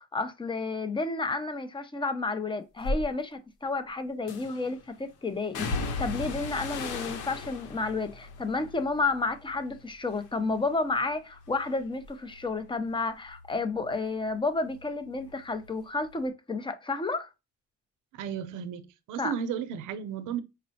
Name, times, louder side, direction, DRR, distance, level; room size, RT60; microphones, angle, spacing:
voice 1, 0.0-17.3 19.2-19.3, left 3 dB, 15° left, 0.6 m, -31 dB
sound 1, 2.8-3.0 4.3-4.7 5.5-9.8 10.1-10.7 11.1-14.4 14.7-15.8 16.1-16.2, left 3 dB, 90° left, 0.7 m, -37 dB
voice 2, 18.1-20.4, right 8 dB, 90° right, 0.6 m, -34 dB
5.1 x 2.0 x 2.7 m
cardioid pair, 90°, 30 cm